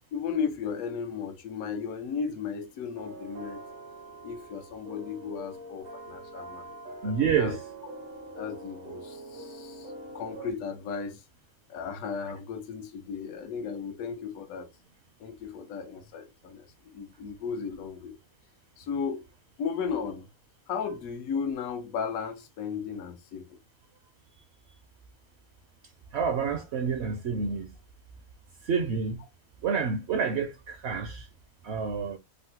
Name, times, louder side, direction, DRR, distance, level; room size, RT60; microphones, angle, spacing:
voice 1, 0.1-3.6 4.2-6.8 7.0-7.6 8.4-11.2 11.7-14.7 15.2-18.2 18.8-19.3 19.6-20.3 20.7-23.6, left 6 dB, 80° left, 1.1 m, -35 dB
sound 1, 2.9-10.5, right 2 dB, 85° right, 1.3 m, -44 dB
voice 2, 7.0-7.6 26.1-27.7 28.6-29.2 29.6-31.3 31.6-32.2, right 6 dB, 65° right, 0.7 m, -28 dB
3.7 x 2.0 x 2.7 m
omnidirectional pair, 1.5 m